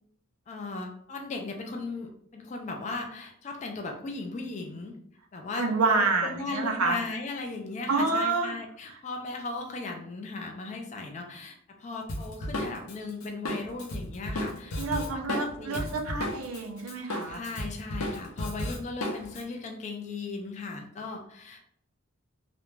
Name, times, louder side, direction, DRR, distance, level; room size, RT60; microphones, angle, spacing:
voice 1, 0.5-5.0 5.3-5.7 6.0-14.8 15.1-16.1 17.3-21.6, left 3 dB, 35° left, 3 dB, 0.3 m, -37 dB
voice 2, 5.6-7.0 7.9-8.5 14.8-17.4, right 3 dB, 85° right, 4 dB, 0.5 m, -28 dB
Drum kit, 12.1-16.6 16.9-19.4, left 1 dB, 90° left, 0.6 m, -33 dB
2.4 x 2.1 x 3.0 m, 0.68 s
head